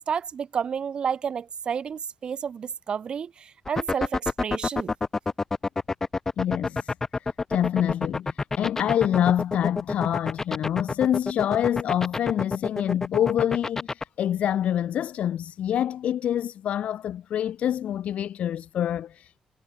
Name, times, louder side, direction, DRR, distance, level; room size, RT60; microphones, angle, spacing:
voice 1, 0.1-4.9, right 7 dB, 40° right, 0.8 m, -30 dB
sound 1, 3.7-14.0, left 3 dB, 20° left, 0.7 m, -27 dB
voice 2, 6.4-19.4, left 10 dB, 60° left, 0.6 m, -26 dB
cardioid pair, 155°, 2 cm